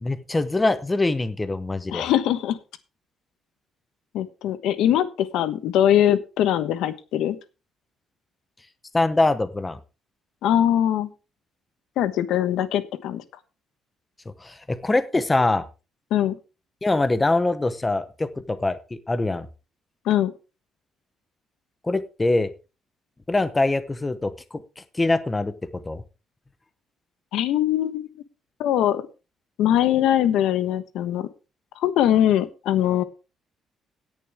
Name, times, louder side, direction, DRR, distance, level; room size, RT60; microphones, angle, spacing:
voice 1, 0.0-2.1 8.9-9.8 14.4-15.6 16.8-19.5 21.8-22.5 23.3-26.0, left 2 dB, 15° left, 11 dB, 0.9 m, -24 dB
voice 2, 1.9-2.6 4.1-7.4 10.4-11.1 12.0-13.2 16.1-16.4 20.0-20.3 27.3-28.1 28.6-29.1 29.6-31.3 31.8-33.0, left 11 dB, 85° left, 12 dB, 1.1 m, -22 dB
18.0 x 6.9 x 3.5 m, 0.30 s
cardioid pair, 155°, 0 cm